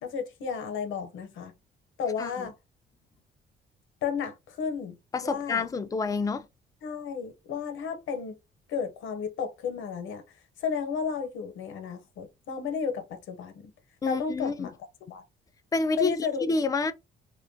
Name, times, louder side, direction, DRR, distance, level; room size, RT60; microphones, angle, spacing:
voice 1, 0.0-1.5 2.0-2.5 4.0-5.7 6.8-8.4 8.7-10.2 10.6-13.7 14.1-14.8 15.1-15.2 16.0-16.5, left 6 dB, 80° left, 0.7 m, -33 dB
voice 2, 2.2-2.5 5.1-6.5 14.0-14.7 15.7-16.9, left 4 dB, 20° left, 0.3 m, -28 dB
2.5 x 2.1 x 2.5 m
cardioid pair, 90°, 20 cm